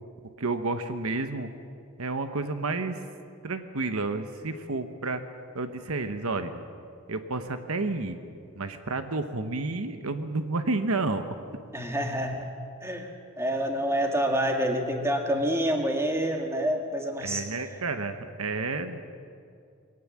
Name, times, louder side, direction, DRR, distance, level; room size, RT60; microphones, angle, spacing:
voice 1, 0.4-1.5 2.0-3.0 3.4-5.2 5.5-6.6 7.1-8.2 8.5-11.4 17.2-19.0, right 3 dB, 75° right, 8 dB, 1.1 m, -30 dB
voice 2, 11.7-12.5 12.8-13.1 13.4-17.4, equal, 10° right, 3 dB, 1.8 m, -27 dB
21.5 x 17.5 x 7.4 m, 2.4 s
head